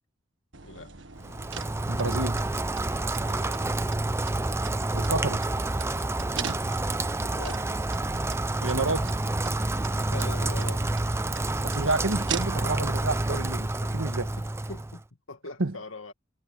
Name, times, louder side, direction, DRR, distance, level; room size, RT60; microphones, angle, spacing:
sound 1, 0.5-12.9, right 6 dB, 65° right, 1.6 m, -41 dB
voice 1, 0.6-0.9 3.3-3.6 7.3-7.6 10.1-10.9 14.4-16.1, left 2 dB, 75° left, 2.2 m, -42 dB
Rain, 1.2-15.0, right 2 dB, 15° right, 0.5 m, -28 dB
voice 2, 1.9-2.4 4.9-5.4 8.6-9.1 11.6-14.3 15.6-15.7, right 2 dB, 80° right, 1.5 m, -29 dB
head